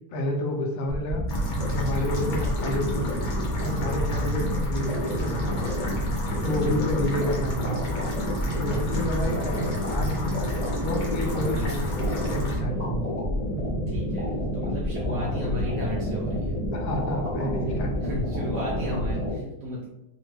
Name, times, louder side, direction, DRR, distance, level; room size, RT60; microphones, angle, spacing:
voice 1, 0.1-1.2 1.6-3.1 3.6-5.7 6.4-7.8 8.5-10.4 10.8-13.2 16.7-18.1, left 1 dB, 80° left, 1 dB, 1.4 m, -30 dB
sound 1, 0.9-19.3, equal, 45° left, 0.5 m, -28 dB
sound 2, 1.3-12.6, equal, 60° left, 1.1 m, -34 dB
voice 2, 4.0-4.3 6.6-6.9 8.6-8.9 11.2-11.9 13.9-16.6 17.6-19.9, right 1 dB, 70° right, -4 dB, 1.1 m, -34 dB
3.4 x 2.1 x 3.1 m, 0.89 s
omnidirectional pair, 2.2 m